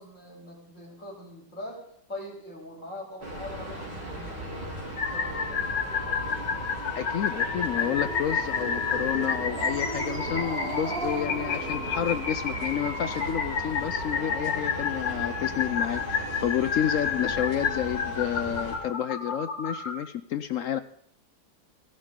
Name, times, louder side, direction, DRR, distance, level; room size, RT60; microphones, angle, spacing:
voice 1, 0.0-5.9, left 1 dB, 45° left, -3 dB, 4.7 m, -42 dB
sound 1, 3.2-18.8, right 1 dB, 80° right, 4.4 m, -38 dB
sound 2, 5.0-19.9, left 6 dB, 90° left, 2.4 m, -31 dB
voice 2, 6.9-20.8, left 10 dB, 65° left, 11 dB, 0.8 m, -30 dB
Growling, 7.3-12.7, right 3 dB, 35° right, 1.3 m, -38 dB
16.5 x 12.0 x 3.8 m, 0.66 s
omnidirectional pair, 1.9 m